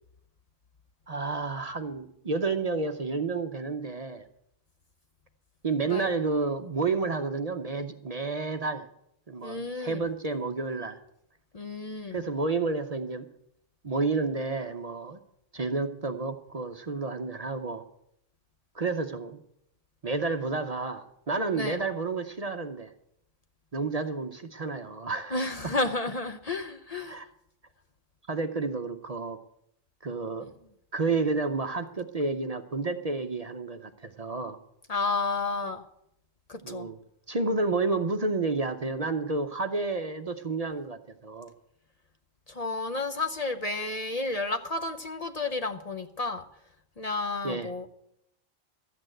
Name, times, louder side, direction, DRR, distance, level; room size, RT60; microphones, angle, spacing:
voice 1, 1.1-4.2 5.6-8.9 9.3-11.0 12.1-13.3 13.8-15.2 15.5-17.8 18.7-19.4 20.0-22.9 23.7-25.7 27.1-27.3 28.3-29.4 30.0-30.5 30.9-34.6 36.6-37.0 37.3-41.5 47.4-47.7, right 3 dB, 40° right, 7 dB, 0.7 m, -30 dB
voice 2, 9.4-10.0 11.5-12.2 21.5-21.8 25.3-27.3 30.4-30.5 34.9-35.8 36.5-36.9 42.5-46.4 47.0-47.9, left 3 dB, 40° left, 8 dB, 0.7 m, -31 dB
13.0 x 8.7 x 7.7 m, 0.76 s
omnidirectional pair, 1.1 m